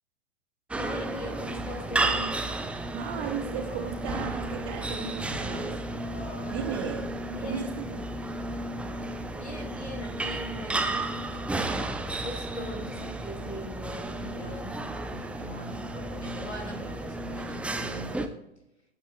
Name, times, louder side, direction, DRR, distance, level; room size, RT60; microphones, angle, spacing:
sound 1, 0.7-18.3, right 2 dB, 5° right, 0.6 m, -33 dB
voice 1, 0.8-2.3 7.2-7.7 9.3-11.4 12.2-18.3, equal, 90° left, 2 dB, 3.1 m, -40 dB
voice 2, 2.9-5.8 6.5-7.1 7.4-8.1, right 7 dB, 40° right, 2 dB, 3.0 m, -35 dB
sound 2, 3.5-4.6 5.8-7.3 8.3-9.3 9.8-10.0 15.9-17.1, left 2 dB, 45° left, 4.2 m, -50 dB
19.0 x 9.0 x 2.4 m, 0.86 s
figure-of-eight pair, 100°, 33 cm